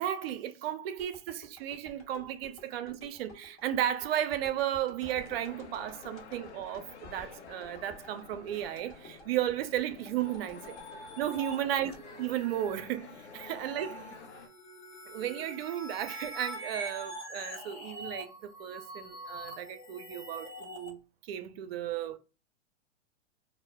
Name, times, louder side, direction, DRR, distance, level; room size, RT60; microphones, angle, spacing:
voice 1, 0.0-10.8 11.2-11.9 12.2-14.0 15.1-22.2, right 11 dB, 60° right, 0.5 m, -34 dB
sound 1, 1.0-13.2 13.6-13.7, left 2 dB, 35° left, 0.9 m, -54 dB
sound 2, 5.0-14.5, left 6 dB, 75° left, 0.7 m, -50 dB
sound 3, 10.2-20.9, right 1 dB, 20° left, 0.5 m, -44 dB
2.1 x 2.0 x 3.3 m
hypercardioid pair, 110°, 35 cm